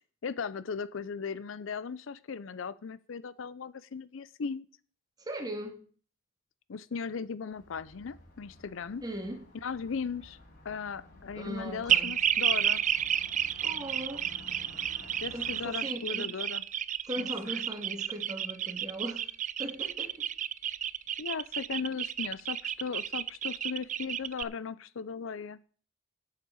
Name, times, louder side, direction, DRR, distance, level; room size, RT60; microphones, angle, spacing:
voice 1, 0.2-4.7 6.7-9.0 9.6-10.4 10.6-12.8 15.2-16.6 17.2-17.6 21.2-25.6, left 5 dB, 65° left, 0.5 m, -37 dB
voice 2, 5.2-5.8 9.0-9.5 11.3-12.1 13.6-14.3 15.3-16.3 17.1-19.2 19.6-20.3, right 1 dB, 20° right, 2.1 m, -39 dB
Car passing by, 7.5-15.7, left 1 dB, 50° left, 4.5 m, -53 dB
sound 1, 11.9-24.4, right 10 dB, 40° right, 0.4 m, -31 dB
8.5 x 6.5 x 8.3 m
head